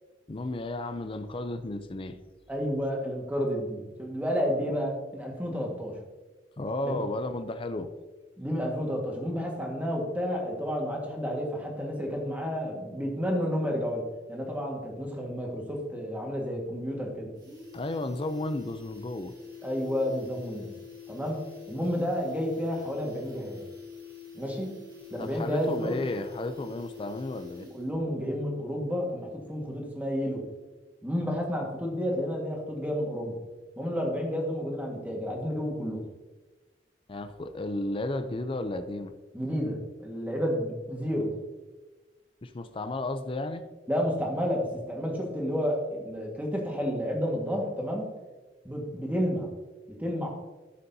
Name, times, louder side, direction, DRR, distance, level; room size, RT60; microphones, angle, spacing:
voice 1, 0.3-2.2 6.6-7.9 17.7-19.3 25.2-27.7 37.1-39.1 42.4-43.6, left 2 dB, 30° left, 9 dB, 0.5 m, -33 dB
voice 2, 2.5-6.0 6.8-7.0 8.4-14.0 14.3-17.3 19.6-20.7 21.1-21.4 21.7-23.6 24.3-24.7 25.1-26.0 27.7-30.4 31.0-33.4 33.8-36.0 39.3-41.3 43.9-48.1 48.6-49.5 49.9-50.3, equal, 10° right, 0 dB, 1.6 m, -31 dB
sound 1, 16.4-16.5 16.8-16.9 17.2-28.0 28.3-28.4, left 7 dB, 25° right, 2.3 m, -46 dB
12.5 x 6.8 x 2.7 m, 1.2 s
head